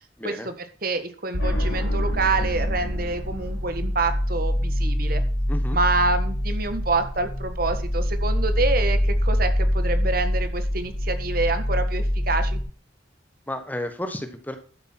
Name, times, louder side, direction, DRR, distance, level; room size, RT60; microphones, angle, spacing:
voice 1, 0.2-0.5 5.5-5.8 13.5-14.6, left 1 dB, 10° left, 8 dB, 1.3 m, -32 dB
voice 2, 0.8-5.2 5.7-12.6, right 3 dB, 50° right, 9 dB, 1.5 m, -27 dB
sound 1, 1.3-12.6, equal, 65° left, 2.2 m, -25 dB
12.5 x 7.9 x 4.5 m, 0.41 s
head